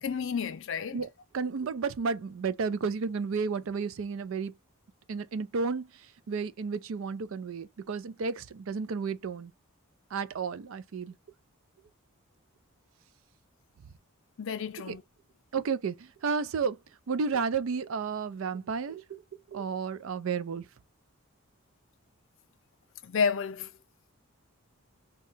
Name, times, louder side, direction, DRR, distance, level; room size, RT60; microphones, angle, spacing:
voice 1, 0.0-1.0 14.4-15.0 23.0-23.7, left 6 dB, 60° left, 0.4 m, -30 dB
voice 2, 1.3-4.5 5.1-9.5 10.1-11.1 14.9-15.0 15.5-16.8 17.1-19.0 19.5-20.7, right 5 dB, 60° right, 0.4 m, -32 dB
2.7 x 2.3 x 3.9 m
head